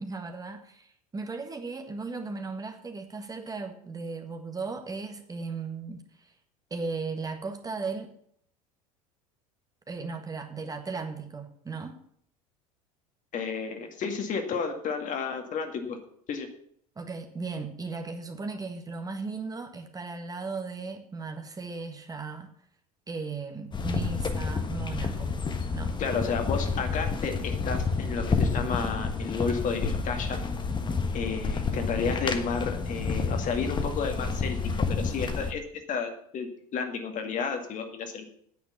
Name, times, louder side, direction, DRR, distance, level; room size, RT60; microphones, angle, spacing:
voice 1, 0.0-6.3 6.7-8.1 9.9-12.0 16.9-22.5 23.1-25.4 25.7-25.9, right 4 dB, 20° right, 5 dB, 1.6 m, -36 dB
voice 2, 13.3-16.0 16.3-16.5 26.0-30.4 31.1-34.6 34.9-35.6 35.9-38.2, left 5 dB, 40° left, 5 dB, 2.1 m, -32 dB
sound 1, 23.7-35.5, left 4 dB, 25° left, 1.4 m, -29 dB
9.5 x 8.0 x 7.2 m, 0.65 s
hypercardioid pair, 70°, 19 cm